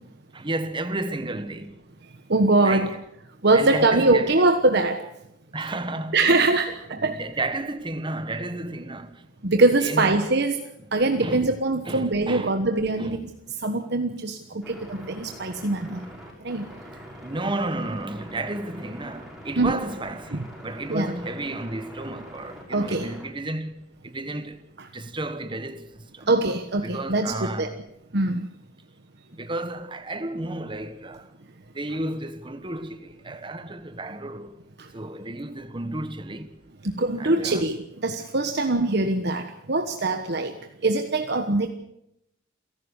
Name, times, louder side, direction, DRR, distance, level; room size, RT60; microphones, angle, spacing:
voice 1, 0.3-1.7 2.6-3.0 3.5-4.4 5.5-9.3 9.5-10.2 11.2-11.5 11.9-12.6 13.0-13.2 17.2-24.6 24.9-26.3 26.8-27.8 29.4-31.3 31.7-34.5 34.9-36.6 37.2-37.7, right 2 dB, 25° right, 1.4 m, -32 dB
voice 2, 2.3-2.9 3.4-5.0 6.1-7.2 9.4-10.6 10.9-13.2 13.6-14.4 14.7-16.0 16.4-16.6 19.6-19.8 20.3-20.4 20.9-21.1 22.7-23.1 24.8-24.9 26.3-27.7 28.1-28.5 36.9-40.5 40.8-41.7, right 2 dB, 60° right, 1.3 m, -22 dB
sound 1, 14.6-23.3, equal, ahead, 6.1 m, -44 dB
29.0 x 12.0 x 8.3 m
head